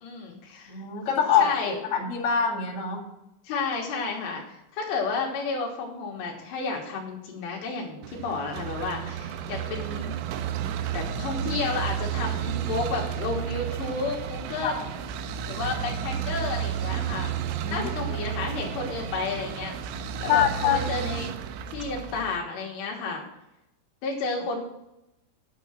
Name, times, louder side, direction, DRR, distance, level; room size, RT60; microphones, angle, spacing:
voice 1, 0.0-0.8 1.4-1.8 3.4-10.1 10.9-14.9 15.5-17.4 17.7-19.8 20.2-21.3 21.7-23.2 24.0-24.6, left 4 dB, 70° left, -1 dB, 3.1 m, -31 dB
voice 2, 0.7-3.0 14.6-14.9 17.6-18.1 20.3-20.8, left 8 dB, 55° left, -3 dB, 1.7 m, -25 dB
sound 1, 8.0-22.4, right 9 dB, 80° right, 3.0 m, -32 dB
9.4 x 6.9 x 6.2 m, 0.88 s
omnidirectional pair, 5.9 m